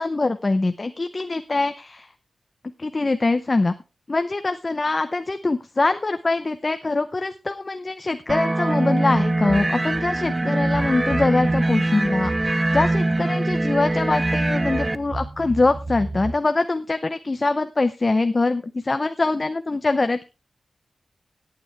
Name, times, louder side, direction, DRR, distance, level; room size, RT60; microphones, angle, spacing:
voice 1, 0.0-2.1 2.8-3.7 4.1-20.2, left 3 dB, 30° left, 9 dB, 0.7 m, -23 dB
sound 1, 8.3-14.9, right 2 dB, 25° right, 0.6 m, -23 dB
sound 2, 9.0-16.3, right 2 dB, 60° right, 6.3 m, -35 dB
17.5 x 8.9 x 3.3 m, 0.28 s
wide cardioid pair, 115°, 0 cm